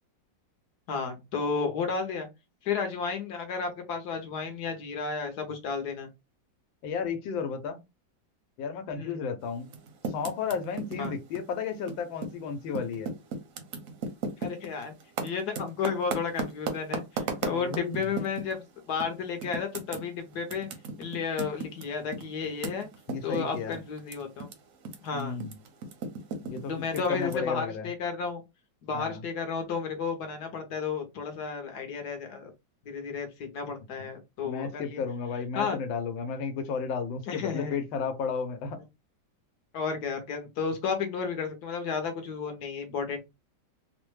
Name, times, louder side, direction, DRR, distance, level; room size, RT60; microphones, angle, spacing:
voice 1, 0.9-2.3 2.6-6.1 9.0-9.2 11.0-11.1 14.4-14.9 15.2-20.7 21.0-22.9 23.2-24.5 25.0-25.4 26.7-28.4 28.8-32.5 32.8-35.0 35.5-35.8 37.3-37.8 39.7-43.2, left 5 dB, 65° left, 1.2 m, -32 dB
voice 2, 6.8-7.8 8.6-9.7 10.1-13.1 17.4-18.0 23.1-23.8 25.1-25.6 26.4-26.7 27.1-27.9 28.9-29.2 34.4-38.8, left 6 dB, 90° left, 1.4 m, -33 dB
Typing, 9.6-12.4 12.7-18.6 19.0-19.1 19.4-24.5 24.8-27.3, right 4 dB, 65° right, 0.8 m, -36 dB
3.3 x 2.1 x 3.0 m
omnidirectional pair, 2.0 m